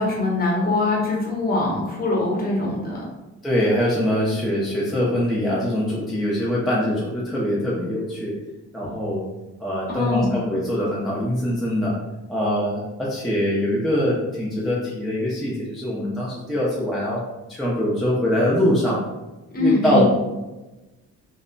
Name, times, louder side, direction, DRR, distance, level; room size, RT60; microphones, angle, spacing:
voice 1, 0.0-3.1 8.8-8.9 9.9-10.4 19.5-20.0, left 2 dB, 30° left, -4 dB, 0.7 m, -23 dB
voice 2, 3.4-8.3 8.7-9.2 9.6-11.9 12.3-17.2 17.5-19.0 19.6-20.0, equal, ahead, -7 dB, 0.3 m, -23 dB
2.1 x 2.0 x 3.7 m, 1.1 s
cardioid pair, 160°, 30 cm